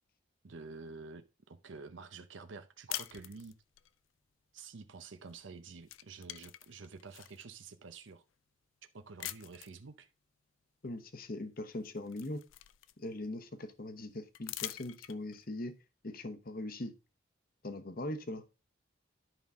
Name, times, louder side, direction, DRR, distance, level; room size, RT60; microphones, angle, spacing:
voice 1, 0.4-3.6 4.5-8.2 8.9-10.1, right 4 dB, 65° right, 0.7 m, -49 dB
sound 1, 2.9-3.9 5.3-5.5 5.8-7.4 8.1-8.2 9.2-9.8 11.2-11.3 11.7-13.3 14.3-15.4, left 14 dB, 75° left, 0.4 m, -44 dB
voice 2, 10.8-12.4 13.0-15.7 16.0-16.9 17.6-18.4, left 1 dB, 45° left, 0.9 m, -41 dB
11.0 x 5.5 x 3.6 m
head